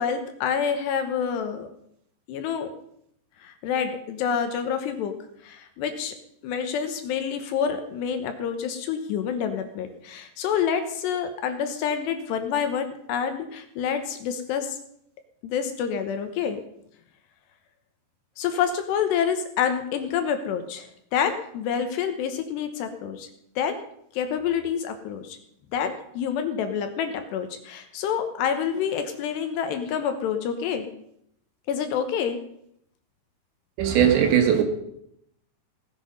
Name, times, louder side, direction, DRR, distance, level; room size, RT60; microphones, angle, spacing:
voice 1, 0.0-1.7 2.3-2.7 3.4-5.1 5.4-6.1 6.4-14.8 15.4-16.6 18.4-23.3 23.6-23.8 24.1-25.4 25.7-30.9 31.7-32.4, left 7 dB, 75° left, 7 dB, 3.1 m, -27 dB
voice 2, 33.8-34.6, right 9 dB, 80° right, 4 dB, 4.0 m, -19 dB
17.5 x 10.5 x 5.4 m, 0.73 s
omnidirectional pair, 5.2 m